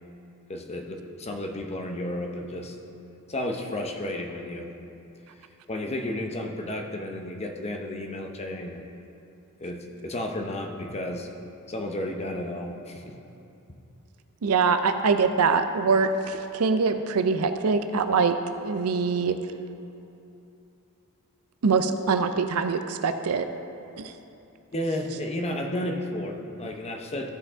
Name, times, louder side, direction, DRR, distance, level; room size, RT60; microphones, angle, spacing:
voice 1, 0.5-2.8 3.3-4.7 5.7-8.8 9.6-11.3 11.7-13.2 24.7-27.3, left 1 dB, 30° left, 3 dB, 0.7 m, -32 dB
voice 2, 14.4-18.4 18.6-19.4 21.6-23.5 24.0-24.1, right 5 dB, 70° right, 8 dB, 0.5 m, -23 dB
14.5 x 5.3 x 3.6 m, 2.7 s
head